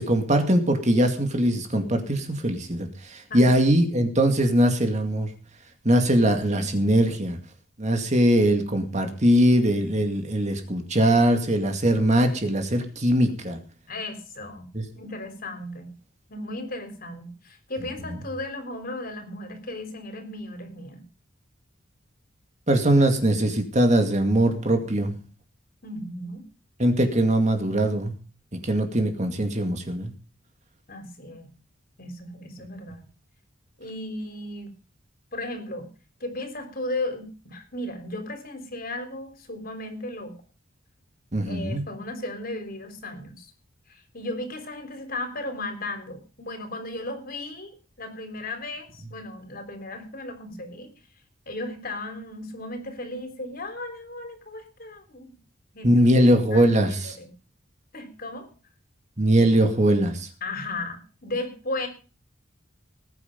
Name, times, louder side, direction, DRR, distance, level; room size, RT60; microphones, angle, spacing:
voice 1, 0.0-5.3 5.8-7.4 7.8-13.6 14.7-14.8 22.7-25.1 26.8-28.1 28.5-30.1 41.3-41.8 55.8-57.1 59.2-60.3, right 1 dB, 35° right, 6 dB, 2.3 m, -21 dB
voice 2, 3.3-3.8 13.9-14.7 14.9-15.9 16.3-21.0 25.8-26.5 30.9-31.5 32.0-33.1 33.8-34.7 35.3-35.9 36.2-40.4 41.5-43.5 43.9-50.9 51.5-55.3 55.7-56.1 56.5-57.3 57.9-58.5 60.4-61.9, left 2 dB, 45° left, 6 dB, 3.7 m, -35 dB
20.0 x 9.5 x 5.3 m, 0.36 s
head